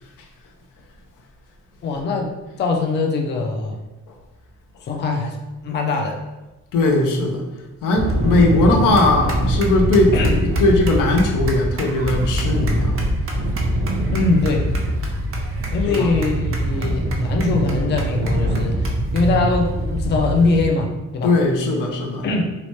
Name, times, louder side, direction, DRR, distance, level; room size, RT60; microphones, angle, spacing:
voice 1, 1.8-2.3 2.6-3.8 4.8-5.4 5.6-6.2 10.1-10.3 14.1-14.7 15.7-21.3 22.2-22.6, left 3 dB, 35° left, 3 dB, 0.4 m, -22 dB
voice 2, 6.7-7.4 7.8-13.0 15.9-16.1 21.2-22.3, left 2 dB, 85° left, 1 dB, 0.5 m, -19 dB
sound 1, 8.0-20.6, right 1 dB, 45° right, 0.5 m, -23 dB
2.9 x 2.1 x 2.9 m, 1.1 s
cardioid pair, 105°, 31 cm